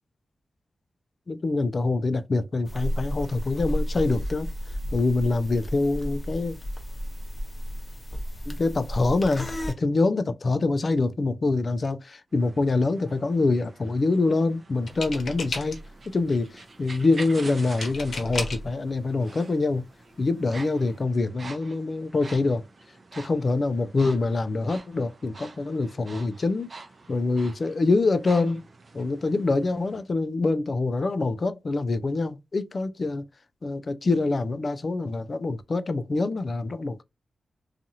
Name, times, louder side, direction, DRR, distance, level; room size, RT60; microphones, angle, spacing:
voice 1, 1.3-4.5 4.9-6.5 8.5-9.5 9.8-15.8 16.1-16.5 16.8-19.8 20.2-22.6 23.2-26.7 27.1-28.6 28.9-33.2 33.6-37.0, left 3 dB, 50° left, 0.4 m, -25 dB
sound 1, 2.7-9.7, equal, 30° left, 0.7 m, -32 dB
sound 2, 12.3-30.0, right 3 dB, 50° right, 0.6 m, -47 dB
sound 3, 14.9-16.0 17.8-18.7 19.7-19.8 20.1-20.4, left 3 dB, 70° left, 0.8 m, -33 dB
2.8 x 2.4 x 2.7 m
cardioid pair, 65°, 0 cm